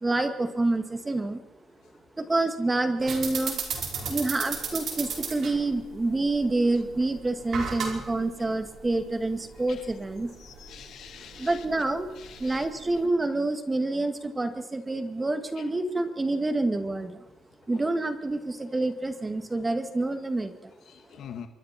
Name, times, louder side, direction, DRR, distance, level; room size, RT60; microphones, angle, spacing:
voice 1, 0.0-1.4 2.2-3.6 4.1-10.3 11.4-12.1 12.4-17.2 17.7-20.7, right 2 dB, 20° right, 8 dB, 2.1 m, -27 dB
sound 1, 3.0-13.1, right 5 dB, 65° right, 5.3 m, -36 dB
voice 2, 10.4-11.6 12.1-12.6 15.6-15.7 17.7-17.9 20.8-21.5, left 8 dB, 75° left, 7 dB, 1.7 m, -45 dB
26.0 x 23.0 x 4.4 m, 1.0 s
cardioid pair, 90°, 0 cm